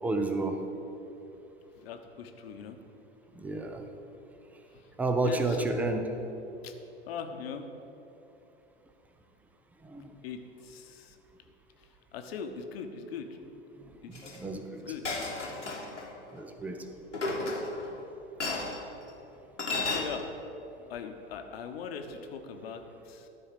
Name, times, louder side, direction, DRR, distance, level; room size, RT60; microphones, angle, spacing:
voice 1, 0.0-0.7 3.4-3.9 5.0-6.1 9.8-10.1 14.1-14.9 16.3-16.9 17.1-17.3, right 2 dB, 5° right, 6 dB, 0.3 m, -31 dB
voice 2, 1.8-2.8 4.7-4.9 5.2-5.7 6.6-6.7 7.1-7.6 10.2-11.2 12.1-13.4 14.0-14.4 14.8-15.1 19.8-20.3 20.9-23.3, left 6 dB, 55° left, 6 dB, 1.0 m, -40 dB
Chink clink, 14.1-14.4 15.0-16.1 17.1-17.9 18.4-18.8 19.6-20.0, left 3 dB, 90° left, 1.6 m, -32 dB
12.5 x 4.5 x 6.7 m, 3.0 s
figure-of-eight pair, 95°, 35 cm